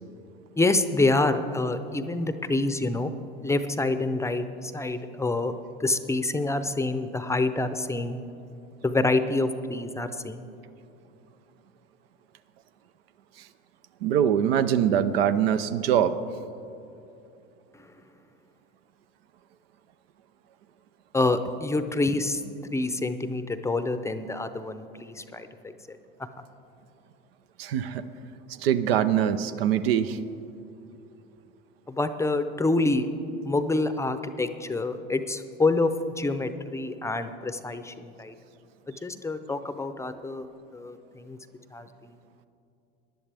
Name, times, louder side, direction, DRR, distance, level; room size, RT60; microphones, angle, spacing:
voice 1, 0.6-3.1 3.4-5.5 5.8-8.2 8.8-10.4 21.1-22.4 22.7-26.0 31.9-33.1 33.4-35.9 36.2-38.3 39.0-40.5 40.7-41.4 41.7-41.9, left 2 dB, 10° left, 10 dB, 0.6 m, -27 dB
voice 2, 14.0-16.1 27.6-28.0 28.5-30.2, right 9 dB, 85° right, 12 dB, 0.6 m, -23 dB
18.5 x 10.5 x 3.4 m, 2.7 s
hypercardioid pair, 95°, 29 cm